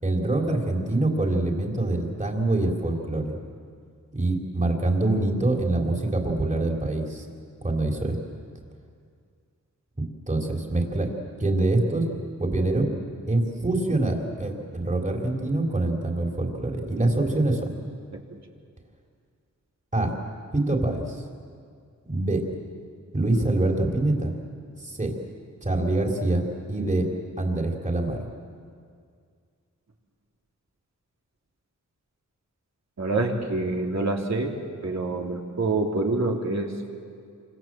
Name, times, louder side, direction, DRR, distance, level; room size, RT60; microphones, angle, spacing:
voice 1, 0.0-3.4 4.1-7.3 7.6-8.2 10.3-11.1 11.4-12.1 12.4-12.9 13.3-17.7 19.9-20.2 20.5-21.2 22.1-22.4 23.1-24.3 24.8-25.1 25.6-26.4 26.7-27.1 27.4-28.2, right 2 dB, 25° right, 1 dB, 3.7 m, -25 dB
voice 2, 33.0-34.6 34.8-36.9, right 2 dB, 60° right, 0 dB, 3.3 m, -26 dB
28.5 x 26.0 x 7.6 m, 2.2 s
wide cardioid pair, 120°, 31 cm